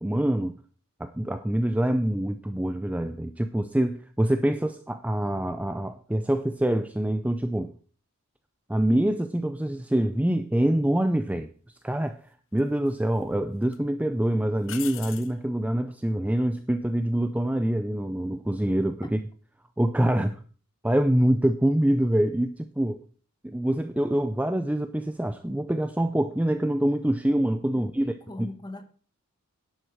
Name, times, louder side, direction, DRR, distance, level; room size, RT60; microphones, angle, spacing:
voice 1, 0.0-0.6 1.0-7.7 8.7-11.5 11.8-12.2 12.5-19.2 19.8-20.4 20.8-23.0 23.4-28.1, right 1 dB, 5° right, 0.5 m, -25 dB
sound 1, 11.3-11.5 12.6-13.2 13.6-13.8 14.6-15.4 18.5-18.8, left 13 dB, 60° left, 0.7 m, -41 dB
voice 2, 27.7-28.8, left 2 dB, 20° left, 1.2 m, -40 dB
11.0 x 8.1 x 6.2 m
head